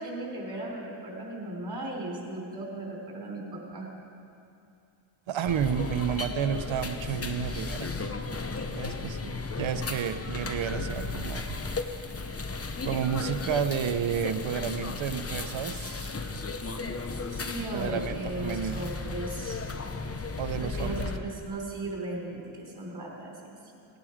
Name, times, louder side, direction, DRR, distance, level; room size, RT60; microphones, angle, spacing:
voice 1, 0.0-3.9 17.3-19.6 20.6-23.3, right 2 dB, 50° right, -1 dB, 3.4 m, -36 dB
voice 2, 5.3-7.9 8.3-8.4 8.7-11.5 12.8-16.2 17.6-18.8 20.4-21.1, right 8 dB, 70° right, 10 dB, 0.8 m, -31 dB
sound 1, 5.4-21.2, left 3 dB, 30° left, 0.9 m, -35 dB
18.5 x 10.5 x 5.0 m, 2.6 s
cardioid pair, 75°, 49 cm